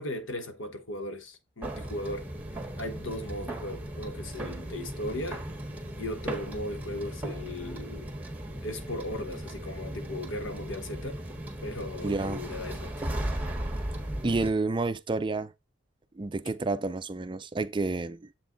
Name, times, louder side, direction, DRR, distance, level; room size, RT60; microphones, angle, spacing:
voice 1, 0.0-5.4 6.0-8.1 8.6-11.2 11.6-12.9, left 1 dB, 75° left, 1.2 m, -37 dB
sound 1, 1.6-14.5, right 1 dB, 10° right, 1.6 m, -37 dB
voice 2, 12.0-12.4 14.2-15.5 16.2-18.3, right 3 dB, 25° right, 0.4 m, -29 dB
7.8 x 4.6 x 3.9 m
head